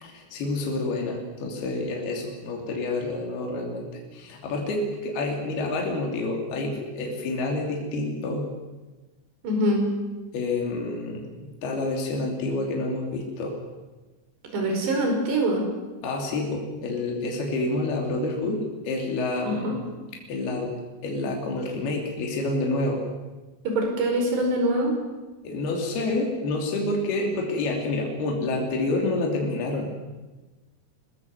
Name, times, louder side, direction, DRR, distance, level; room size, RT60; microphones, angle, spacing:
voice 1, 0.0-8.5 10.3-13.6 16.0-19.8 20.3-20.7 21.0-23.0 25.4-29.9, left 2 dB, 65° left, 1 dB, 4.8 m, -28 dB
voice 2, 9.4-9.8 14.5-15.7 19.4-19.8 23.7-25.0, right 1 dB, 75° right, 2 dB, 7.3 m, -24 dB
24.0 x 20.0 x 7.9 m, 1.2 s
omnidirectional pair, 5.0 m